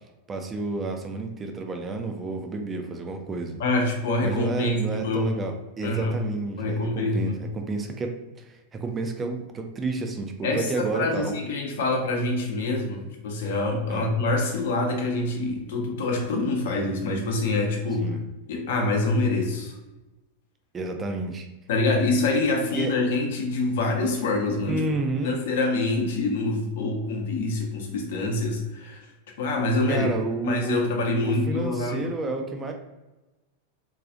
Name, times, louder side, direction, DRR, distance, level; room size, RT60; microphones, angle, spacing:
voice 1, 0.3-3.6 4.2-11.3 13.9-14.1 18.0-18.2 20.7-21.5 22.7-22.9 24.7-25.3 29.9-30.9 31.2-32.7, right 3 dB, 20° right, 4 dB, 0.4 m, -30 dB
voice 2, 3.6-5.3 5.8-6.2 6.6-7.4 10.4-18.1 18.5-19.7 21.7-24.8 25.2-29.0 29.4-30.1 30.4-32.1, left 2 dB, 55° left, 2 dB, 0.7 m, -25 dB
3.8 x 2.3 x 2.5 m, 1.1 s
figure-of-eight pair, 90°, 0 cm